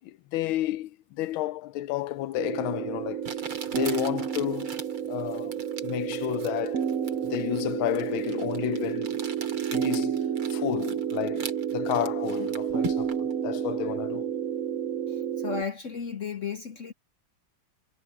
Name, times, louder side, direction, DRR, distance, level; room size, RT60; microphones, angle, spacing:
voice 1, 0.0-3.4 3.7-4.8 5.1-6.9 7.2-9.3 9.7-10.2 10.5-14.3, left 15 dB, 75° left, 1.5 m, -31 dB
Crumpling crinkling, 2.3-2.4 3.2-13.3, right 4 dB, 90° right, 3.5 m, -42 dB
sound 1, 2.4-15.6, right 8 dB, 65° right, 0.8 m, -30 dB
voice 2, 15.1-16.9, left 6 dB, 55° left, 0.9 m, -34 dB
omnidirectional pair, 2.3 m